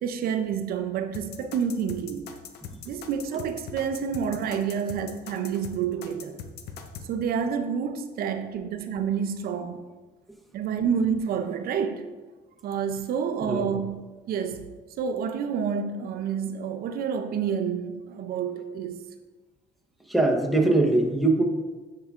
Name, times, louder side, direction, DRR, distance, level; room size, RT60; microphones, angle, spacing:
voice 1, 0.0-2.3 2.8-6.4 7.0-9.8 10.5-12.1 12.6-14.7 15.0-19.0, right 7 dB, 65° right, 0.5 m, -29 dB
sound 1, 1.1-7.1, left 7 dB, 70° left, 0.6 m, -41 dB
voice 2, 13.4-13.7 20.1-21.4, right 2 dB, ahead, 0.9 m, -22 dB
9.3 x 4.7 x 2.4 m
cardioid pair, 110°, 17 cm